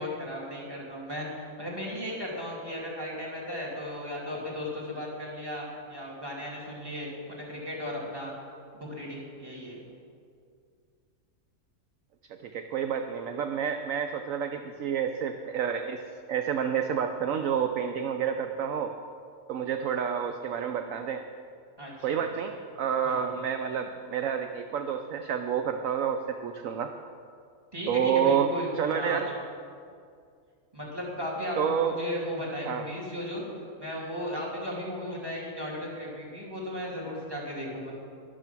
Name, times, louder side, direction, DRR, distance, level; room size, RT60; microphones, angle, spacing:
voice 1, 0.0-8.3 8.7-9.8 21.8-22.3 23.0-23.4 27.7-29.2 30.7-33.4 33.8-37.9, left 1 dB, 15° right, -3 dB, 2.8 m, -36 dB
voice 2, 12.4-16.0 16.3-18.9 19.5-21.2 22.0-26.9 27.9-28.5 28.7-29.3 31.6-31.9 32.6-32.8, right 8 dB, 65° right, 7 dB, 1.0 m, -29 dB
12.5 x 11.0 x 6.1 m, 2.3 s
omnidirectional pair, 1.6 m